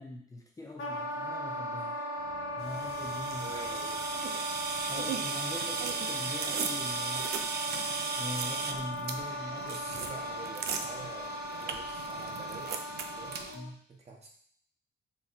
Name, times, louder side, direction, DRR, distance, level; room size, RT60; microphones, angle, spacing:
voice 1, 0.0-2.1 2.5-3.6 4.8-7.3 8.2-10.0 13.5-13.8, left 2 dB, 15° left, 0 dB, 0.5 m, -42 dB
Wind instrument woodwind instrument, 0.8-13.7, left 1 dB, 80° left, 0.9 m, -38 dB
sound 1, 2.2-7.7, left 2 dB, 55° left, 1.0 m, -59 dB
sound 2, 2.7-13.6, right 6 dB, 55° right, 0.4 m, -37 dB
voice 2, 3.4-4.0 9.6-12.7 13.1-13.5 13.9-14.3, right 3 dB, 35° right, 0 dB, 0.8 m, -47 dB
3.0 x 2.1 x 3.9 m, 0.62 s
cardioid pair, 90°, 20 cm